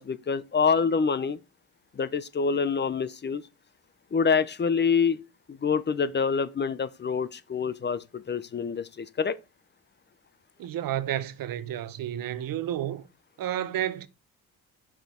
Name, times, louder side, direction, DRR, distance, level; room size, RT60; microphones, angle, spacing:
voice 1, 0.0-1.4 2.0-3.4 4.1-5.2 5.5-9.4, left 5 dB, 25° left, 0.7 m, -26 dB
voice 2, 10.6-13.0 13.4-14.1, right 11 dB, 55° right, 0.8 m, -31 dB
6.2 x 5.0 x 4.4 m
supercardioid pair, 70°, 40 cm